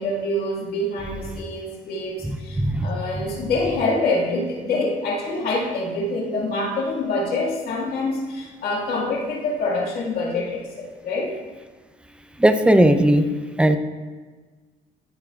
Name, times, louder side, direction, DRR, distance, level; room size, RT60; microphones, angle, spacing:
voice 1, 0.0-11.3, left 2 dB, 65° left, -3 dB, 2.0 m, -26 dB
voice 2, 12.4-13.2 13.6-13.8, right 1 dB, 5° right, 8 dB, 0.6 m, -16 dB
13.0 x 7.5 x 2.4 m, 1.4 s
cardioid pair, 110°, 17 cm